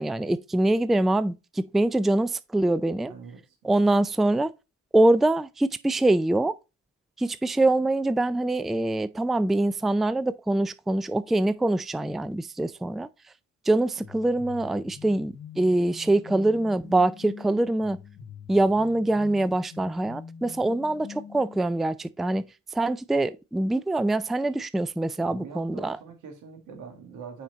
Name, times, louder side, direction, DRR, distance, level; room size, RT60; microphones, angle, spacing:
voice 1, 0.0-3.1 3.6-4.5 4.9-6.5 7.2-13.1 13.7-18.0 18.5-22.4 22.7-26.0, right 2 dB, ahead, 0.3 m, -24 dB
voice 2, 3.1-3.6 25.2-27.4, right 5 dB, 90° right, 1.9 m, -43 dB
sound 1, 14.0-21.6, left 7 dB, 60° left, 1.0 m, -45 dB
5.9 x 4.4 x 3.9 m
cardioid pair, 90°, 30 cm